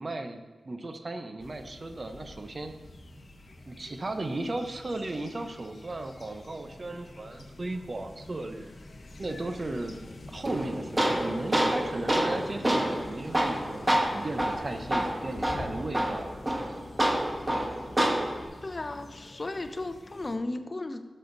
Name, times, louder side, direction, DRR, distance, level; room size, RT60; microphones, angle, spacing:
voice 1, 0.0-2.7 3.6-8.7 9.2-9.9 10.3-13.9 14.1-16.3, right 2 dB, 45° right, 7 dB, 0.9 m, -36 dB
sound 1, 1.4-20.4, left 2 dB, 55° left, 1.1 m, -46 dB
Tools, 10.5-18.5, right 1 dB, 25° right, 1.2 m, -28 dB
voice 2, 18.6-21.0, left 2 dB, 40° left, 8 dB, 0.7 m, -35 dB
12.0 x 6.6 x 4.0 m, 1.4 s
cardioid pair, 55°, 0 cm